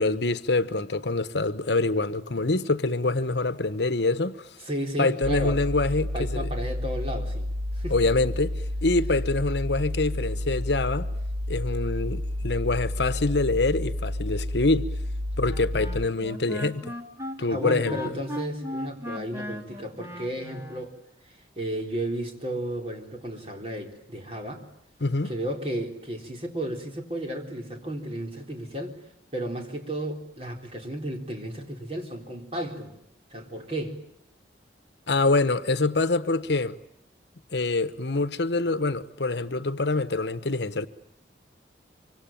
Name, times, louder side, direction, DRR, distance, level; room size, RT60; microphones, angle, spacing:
voice 1, 0.0-4.5 5.0-6.5 7.9-11.1 11.5-14.9 15.4-16.9 17.4-18.0 25.0-25.3 35.1-36.8 37.5-40.9, left 3 dB, 70° left, 1.1 m, -25 dB
voice 2, 4.6-5.6 6.1-7.5 7.7-8.0 17.5-21.0 21.2-24.6 25.2-29.0 29.3-33.0 33.3-34.0, right 1 dB, 30° right, 4.1 m, -33 dB
sound 1, 5.2-16.1, left 1 dB, 65° right, 1.6 m, -30 dB
Wind instrument woodwind instrument, 15.5-20.8, left 1 dB, 15° right, 2.8 m, -37 dB
25.5 x 25.0 x 9.1 m
head